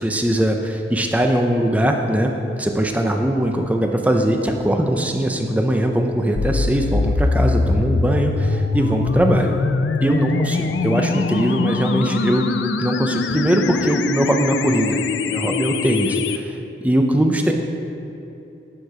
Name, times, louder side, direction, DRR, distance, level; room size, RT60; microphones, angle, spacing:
voice 1, 0.0-2.3 2.6-9.5 10.0-12.5 12.8-15.0 15.3-17.5, right 1 dB, 10° right, 3 dB, 0.5 m, -20 dB
sound 1, 6.4-16.4, left 4 dB, 75° left, 0.4 m, -22 dB
11.5 x 4.5 x 4.8 m, 2.8 s
head